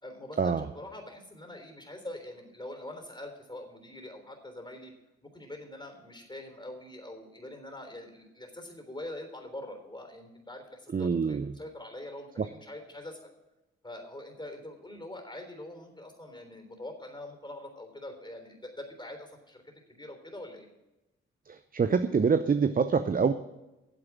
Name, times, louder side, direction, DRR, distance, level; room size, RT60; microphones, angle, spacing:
voice 1, 0.0-4.9 5.2-13.3 13.8-19.6 19.9-20.7, left 1 dB, 15° left, 3 dB, 3.5 m, -44 dB
voice 2, 10.9-11.5 12.4-12.5 21.5-23.3, right 5 dB, 30° right, 11 dB, 0.6 m, -26 dB
9.5 x 7.7 x 7.5 m, 1.0 s
hypercardioid pair, 40°, 30 cm